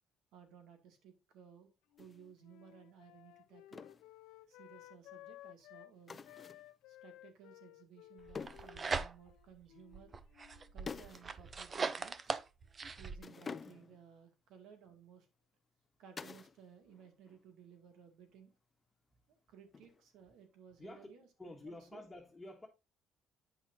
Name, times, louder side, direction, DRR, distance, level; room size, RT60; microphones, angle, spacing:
voice 1, 0.3-1.7 2.0-3.9 4.5-6.2 6.9-10.2 10.7-12.3 13.0-15.3 16.0-18.5 19.3-21.3 21.7-22.0, right 8 dB, 80° right, 2.3 m, -59 dB
Wind instrument woodwind instrument, 1.9-5.9 6.2-10.7, left 15 dB, 90° left, 0.5 m, -57 dB
sound 1, 2.0-2.2 3.7-4.1 6.1-6.7 8.4-8.8 10.9-11.3 11.6-11.7 13.2-14.0 16.2-16.6 16.9-17.4 19.7-20.2, left 5 dB, 30° left, 0.5 m, -48 dB
sound 2, 8.3-9.5 9.9-13.2, right 4 dB, 30° right, 0.6 m, -40 dB
voice 2, 20.8-21.1 21.4-22.7, left 1 dB, 10° left, 1.7 m, -50 dB
9.1 x 5.9 x 2.7 m
cardioid pair, 115°, 0 cm